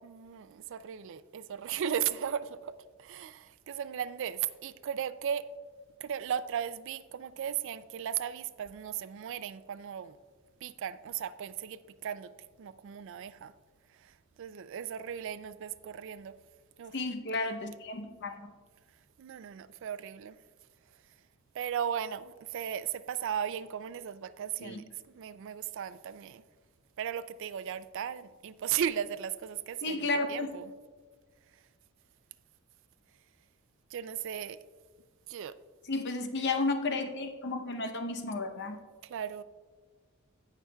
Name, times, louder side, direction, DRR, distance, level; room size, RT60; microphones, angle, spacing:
voice 1, 0.0-2.7 3.0-5.5 6.0-10.2 10.6-12.3 12.6-13.5 14.0-16.4 16.8-17.0 19.2-20.4 21.5-26.4 27.0-30.7 33.9-34.6 35.3-35.5 39.0-39.4, right 9 dB, 60° right, 14 dB, 0.3 m, -36 dB
voice 2, 16.9-18.5 24.6-24.8 29.8-30.5 35.9-38.8, left 3 dB, 50° left, 6 dB, 0.8 m, -33 dB
17.0 x 5.8 x 2.3 m, 1.5 s
head